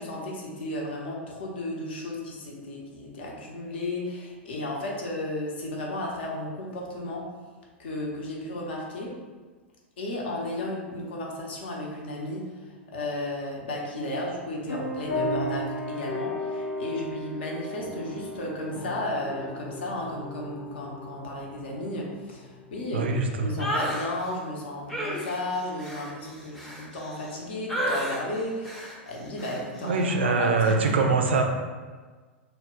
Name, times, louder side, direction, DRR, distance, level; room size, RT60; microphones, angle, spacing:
voice 1, 0.0-7.3 7.8-9.1 10.0-31.0, left 1 dB, 60° left, -2 dB, 0.6 m, -34 dB
sound 1, 14.7-22.8, left 1 dB, 80° left, 0.9 m, -35 dB
voice 2, 22.9-23.7 29.8-31.4, right 4 dB, 65° right, 4 dB, 0.3 m, -23 dB
sound 2, 23.6-24.1 24.9-27.3 27.7-28.2 28.6-29.0 29.4-29.6, equal, 5° left, 0.5 m, -32 dB
2.1 x 2.1 x 3.6 m, 1.4 s
figure-of-eight pair, 95°, 7 cm